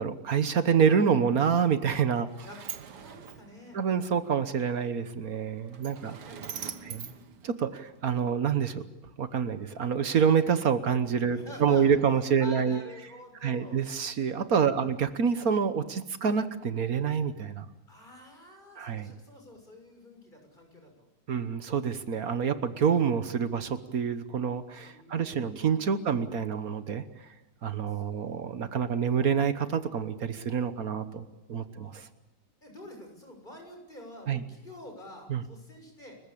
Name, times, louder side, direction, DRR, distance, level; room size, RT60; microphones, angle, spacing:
voice 1, 0.0-2.3 3.7-6.2 6.8-7.1 7.4-8.8 9.2-12.8 13.4-17.7 18.8-19.1 21.3-27.0 27.6-32.1 34.3-34.4 35.3-35.4, right 7 dB, 60° right, 11 dB, 1.6 m, -27 dB
Sliding door, 1.8-8.2, right 7 dB, 80° right, 1.9 m, -44 dB
voice 2, 2.4-3.8 5.9-7.3 11.3-13.8 14.7-14.9 17.9-21.1 24.8-26.1 27.9-28.4 31.8-31.9 32.6-36.2, left 1 dB, 30° left, 3 dB, 6.9 m, -48 dB
30.0 x 15.0 x 8.6 m, 0.97 s
omnidirectional pair, 1.8 m